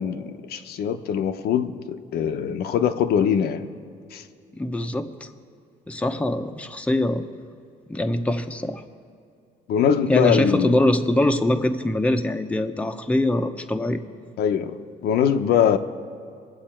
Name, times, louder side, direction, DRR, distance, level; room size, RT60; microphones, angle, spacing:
voice 1, 0.0-3.7 4.1-4.2 9.7-10.8 14.4-15.8, left 8 dB, 70° left, 0.8 m, -22 dB
voice 2, 4.5-5.3 5.9-7.3 7.9-8.8 10.1-14.0, left 1 dB, 5° left, 0.8 m, -23 dB
24.0 x 8.0 x 4.4 m
cardioid pair, 110°, 17 cm